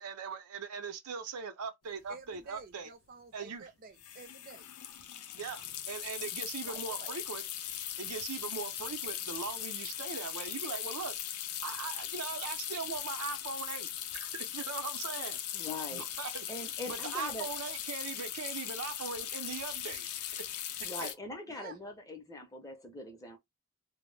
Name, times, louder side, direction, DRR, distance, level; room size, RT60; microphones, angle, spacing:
voice 1, 0.0-2.9 3.3-3.7 5.4-7.4 8.0-11.1 11.6-13.9 14.1-15.4 15.9-16.4 16.9-20.1 21.0-21.1, right 5 dB, 90° right, 0.5 m, -40 dB
sound 1, 2.0-2.1 2.3-2.6 4.0-21.1, left 10 dB, 85° left, 0.4 m, -39 dB
voice 2, 2.1-4.7 4.9-5.1 6.0-7.1 21.5-21.8, right 4 dB, 40° right, 0.4 m, -51 dB
voice 3, 15.5-16.0 16.5-17.5 20.8-23.4, left 2 dB, 15° left, 0.5 m, -42 dB
2.1 x 2.0 x 3.1 m
head